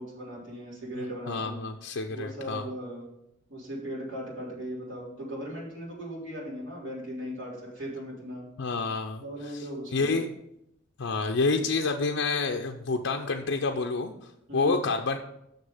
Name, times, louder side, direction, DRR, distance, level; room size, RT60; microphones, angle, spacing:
voice 1, 0.0-1.6 2.1-3.0 3.5-8.5 9.2-10.1 14.5-14.8, equal, 85° right, -6 dB, 3.6 m, -38 dB
voice 2, 1.3-2.6 8.6-9.2 9.5-9.6 9.9-10.3 11.0-15.2, left 3 dB, 85° left, 3 dB, 0.6 m, -28 dB
6.6 x 6.6 x 5.5 m, 0.83 s
head